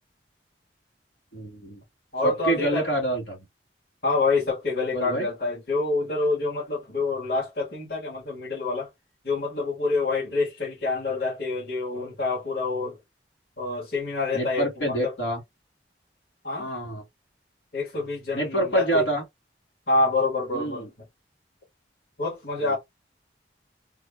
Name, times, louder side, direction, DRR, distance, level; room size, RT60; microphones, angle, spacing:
voice 1, 1.3-1.8 2.2-3.4 4.9-5.3 14.3-15.4 16.6-17.0 18.3-19.2 20.5-20.9 22.6-22.8, right 1 dB, 85° left, 2.4 m, -26 dB
voice 2, 2.1-2.9 4.0-8.9 9.2-13.0 13.6-15.1 16.4-16.7 17.7-19.0 19.9-20.9 22.2-22.8, left 3 dB, 60° left, 2.0 m, -27 dB
3.6 x 2.1 x 3.6 m
head